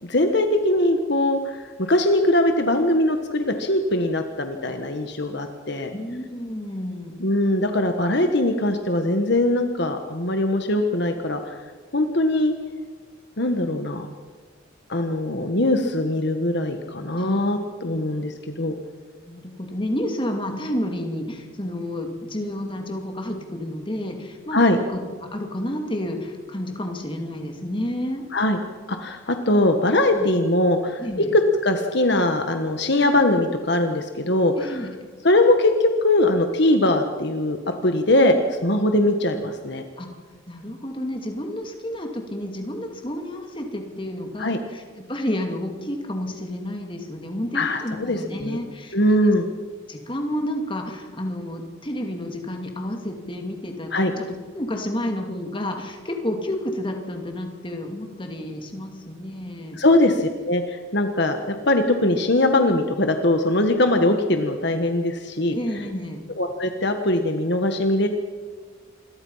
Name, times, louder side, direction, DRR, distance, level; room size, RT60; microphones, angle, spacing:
voice 1, 0.0-5.9 7.2-11.6 11.9-12.5 13.4-14.1 14.9-18.7 24.5-24.8 28.3-28.6 28.9-34.9 35.2-39.8 44.4-44.6 47.5-48.6 48.9-49.4 53.9-54.1 59.8-65.6 66.4-68.1, left 1 dB, 55° left, 6 dB, 1.5 m, -21 dB
voice 2, 5.9-7.1 17.1-17.4 17.9-18.2 19.3-24.6 24.9-28.3 30.1-30.3 31.0-31.3 34.6-34.9 40.0-40.1 40.5-44.8 45.1-48.9 49.2-49.3 49.9-53.9 54.2-54.3 54.5-59.8 65.5-66.2, left 1 dB, 25° left, 3 dB, 2.7 m, -30 dB
27.5 x 22.5 x 5.7 m, 1.5 s
head